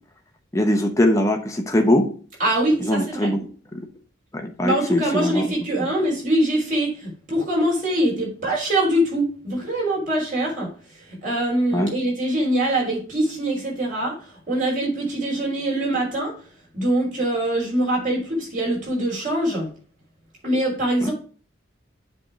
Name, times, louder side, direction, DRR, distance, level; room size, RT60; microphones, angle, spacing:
voice 1, 0.5-2.1 2.8-3.4 3.7-3.9 4.3-5.4 5.8-5.9 11.7-11.9 21.0-21.1, left 1 dB, 15° left, 4 dB, 0.8 m, -21 dB
voice 2, 2.4-3.3 4.6-16.3 16.7-19.7 20.4-21.1, right 1 dB, 40° right, -4 dB, 4.2 m, -23 dB
7.6 x 3.5 x 6.2 m, 0.41 s
head